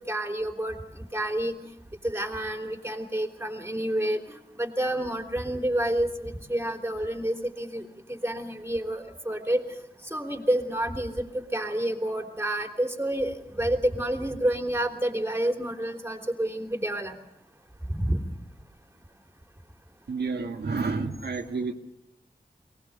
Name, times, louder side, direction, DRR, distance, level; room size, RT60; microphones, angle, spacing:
voice 1, 0.1-1.5 2.0-9.6 10.1-17.1 17.9-18.2, right 1 dB, 15° right, 4 dB, 3.4 m, -29 dB
voice 2, 20.1-21.7, right 4 dB, 80° right, 2 dB, 1.8 m, -30 dB
23.5 x 19.0 x 6.9 m, 0.86 s
wide cardioid pair, 70°, 17 cm